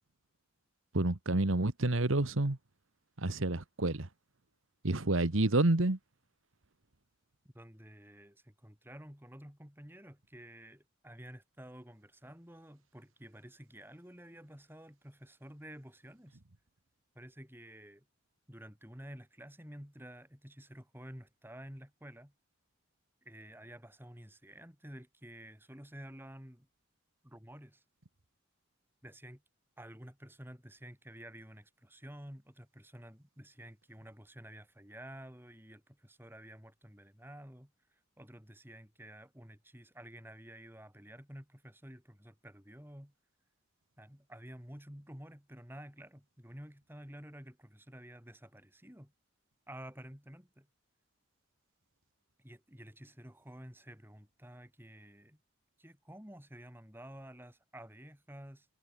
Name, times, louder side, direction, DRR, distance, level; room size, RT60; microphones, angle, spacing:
voice 1, 0.9-2.6 3.2-4.1 4.8-6.0, right 2 dB, 80° right, 1.5 m, -29 dB
voice 2, 7.4-16.4 17.1-18.0 18.5-22.3 23.2-26.7 27.2-27.8 29.0-29.4 29.8-37.7 38.2-43.1 44.0-49.1 49.7-50.7 52.4-55.4 55.8-58.7, equal, 10° right, 5.8 m, -51 dB
head